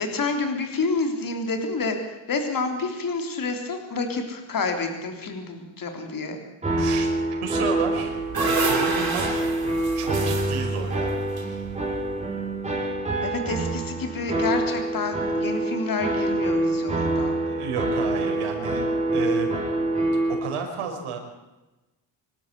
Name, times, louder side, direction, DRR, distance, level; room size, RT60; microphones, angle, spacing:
voice 1, 0.0-2.0 2.3-6.4 13.2-17.4, left 3 dB, 40° left, 5 dB, 3.6 m, -28 dB
sound 1, 6.6-20.3, right 2 dB, 15° right, 5.7 m, -26 dB
voice 2, 6.7-7.1 7.4-8.1 8.5-9.2 10.0-11.2 17.4-19.5 20.4-21.2, right 5 dB, 85° right, 2 dB, 5.4 m, -31 dB
sound 2, 7.9-12.1, right 4 dB, 45° right, 6.4 m, -29 dB
25.5 x 13.0 x 8.2 m, 1.1 s
cardioid pair, 145°, 49 cm